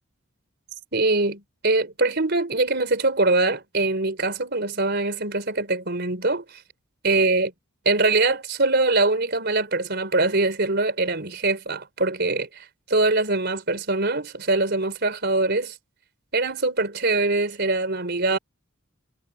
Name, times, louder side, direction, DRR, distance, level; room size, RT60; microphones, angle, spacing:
voice 1, 0.9-6.6 7.0-7.5 7.9-15.7 16.3-18.4, right 2 dB, 50° right, 4.1 m, -23 dB
head